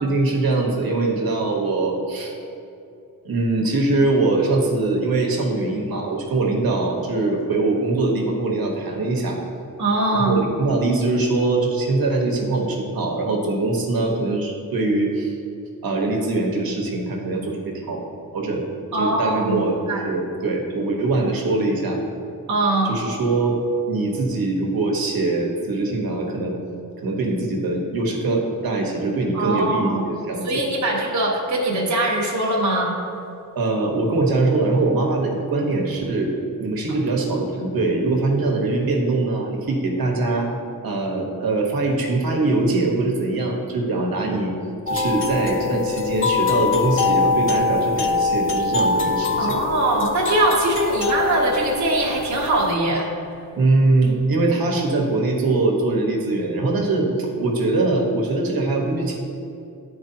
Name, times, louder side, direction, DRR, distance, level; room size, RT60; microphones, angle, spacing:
voice 1, 0.0-2.3 3.2-9.4 10.2-15.3 15.8-18.0 18.3-18.6 18.9-22.0 22.8-26.5 27.0-30.5 33.5-36.3 36.6-40.5 40.8-44.5 44.9-49.6 53.5-59.2, right 2 dB, 90° right, 0 dB, 1.2 m, -22 dB
voice 2, 9.8-10.4 18.9-19.6 19.9-20.0 22.5-23.0 29.3-30.0 30.4-32.9 49.4-53.1, right 2 dB, 55° right, -3 dB, 1.1 m, -21 dB
sound 1, 44.9-52.7, left 4 dB, 40° left, 0.4 m, -23 dB
11.5 x 4.6 x 2.8 m, 2.7 s
wide cardioid pair, 175°, 35 cm